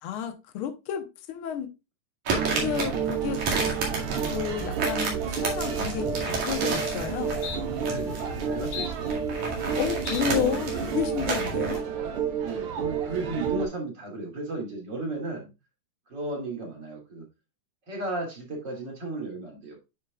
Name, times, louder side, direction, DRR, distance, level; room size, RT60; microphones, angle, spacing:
voice 1, 0.0-1.7 2.5-3.4 3.7-3.8 4.3-7.3 9.8-11.8, left 8 dB, 70° left, 1.2 m, -31 dB
sound 1, 2.3-11.8, right 3 dB, 60° right, 3.4 m, -32 dB
sound 2, 2.4-13.7, right 6 dB, 85° right, 1.2 m, -30 dB
sound 3, 6.3-6.4 6.8-7.0 7.4-7.6 8.1-8.4 8.7-9.8 10.1-10.2 10.7-11.0, left 7 dB, 90° left, 2.7 m, -39 dB
voice 2, 7.8-9.1 12.3-15.5 16.1-17.3 17.9-19.8, right 2 dB, 35° right, 2.8 m, -34 dB
10.5 x 5.0 x 2.3 m
omnidirectional pair, 3.9 m